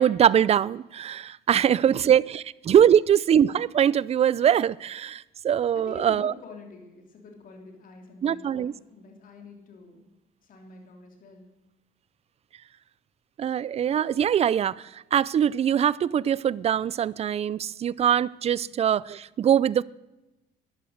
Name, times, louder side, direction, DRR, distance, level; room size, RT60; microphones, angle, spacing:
voice 1, 0.0-6.3 8.2-8.7 13.4-19.8, right 9 dB, 40° right, 0.5 m, -22 dB
voice 2, 5.7-10.0 10.4-11.5 18.6-18.7, left 3 dB, 55° left, 3.2 m, -46 dB
13.0 x 10.5 x 6.5 m
cardioid pair, 110°, 17 cm